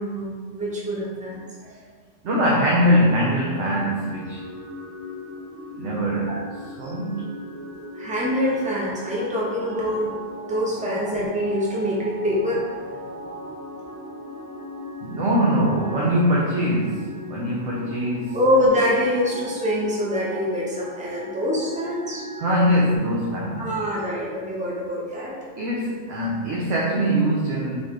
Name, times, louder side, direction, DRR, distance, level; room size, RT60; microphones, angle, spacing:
voice 1, 0.0-1.8 6.3-6.4 6.8-6.9 7.9-12.6 18.3-22.2 23.6-25.4, equal, 10° right, -5 dB, 0.6 m, -25 dB
voice 2, 2.2-4.4 5.8-6.4 6.8-7.3 15.0-18.4 22.4-23.7 25.6-27.8, equal, 70° right, -5 dB, 1.0 m, -22 dB
sound 1, 3.1-23.0, left 1 dB, 55° right, 0.8 m, -38 dB
4.3 x 3.2 x 3.6 m, 1.5 s
omnidirectional pair, 1.3 m